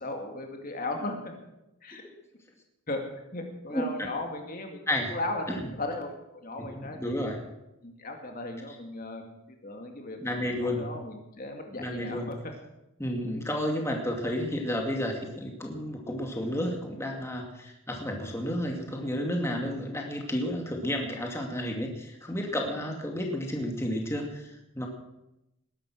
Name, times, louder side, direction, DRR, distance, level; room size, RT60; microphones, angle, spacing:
voice 1, 0.0-1.3 1.8-2.0 2.9-3.0 3.3-4.8 5.1-5.4 5.8-6.1 6.4-7.2 7.8-12.5 13.9-14.0 21.0-21.2, left 2 dB, 40° left, 3 dB, 2.3 m, -36 dB
voice 2, 6.6-7.4 8.7-8.8 10.2-10.9 11.8-12.3 13.0-24.9, left 1 dB, 10° left, 1 dB, 2.3 m, -31 dB
20.0 x 11.0 x 6.3 m, 0.89 s
head